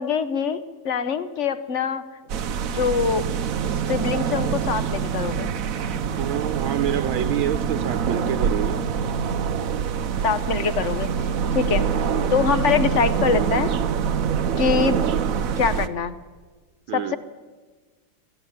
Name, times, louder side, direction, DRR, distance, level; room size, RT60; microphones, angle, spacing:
voice 1, 0.0-2.0 2.7-3.2 3.9-5.5 10.2-11.1 11.5-11.8 12.3-13.7 14.6-15.0 15.6-16.2 16.9-17.2, left 6 dB, 55° left, 12 dB, 0.8 m, -23 dB
sound 1, 2.3-15.9, right 7 dB, 60° right, 0.9 m, -25 dB
voice 2, 6.2-8.8 12.0-12.3 16.9-17.2, right 11 dB, 75° right, 10 dB, 1.6 m, -28 dB
21.0 x 15.0 x 9.4 m, 1.4 s
omnidirectional pair, 2.3 m